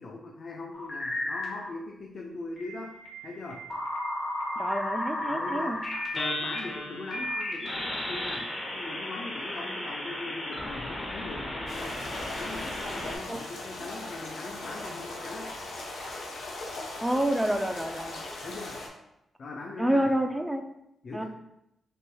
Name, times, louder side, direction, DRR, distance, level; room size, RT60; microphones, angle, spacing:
voice 1, 0.0-2.9 3.2-3.7 5.2-5.8 6.1-12.0 12.4-15.5 18.4-18.8 19.4-20.1 21.0-21.2, left 3 dB, 55° left, 0 dB, 0.5 m, -40 dB
sound 1, 0.7-1.7 2.6-13.2, left 1 dB, 40° left, 1.3 m, -34 dB
voice 2, 4.6-5.8 13.3-13.4 17.0-18.2 19.8-20.6 21.1-21.2, right 1 dB, 5° right, 5 dB, 0.4 m, -28 dB
sound 2, 11.7-18.9, left 2 dB, 85° left, 0.8 m, -39 dB
6.1 x 3.0 x 2.3 m, 0.83 s
cardioid pair, 80°, 0 cm